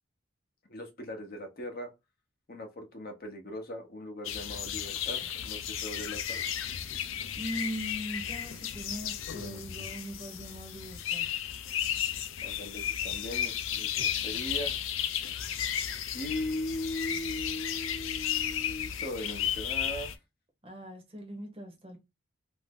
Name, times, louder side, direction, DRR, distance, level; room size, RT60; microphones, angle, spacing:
voice 1, 0.7-1.9 2.5-6.6 12.4-14.8 16.1-20.1, left 1 dB, 50° left, 0.7 m, -39 dB
sound 1, 4.2-20.1, left 9 dB, 85° left, 0.4 m, -34 dB
voice 2, 7.4-11.4 20.6-22.0, equal, 30° right, 0.7 m, -40 dB
2.6 x 2.0 x 3.5 m
head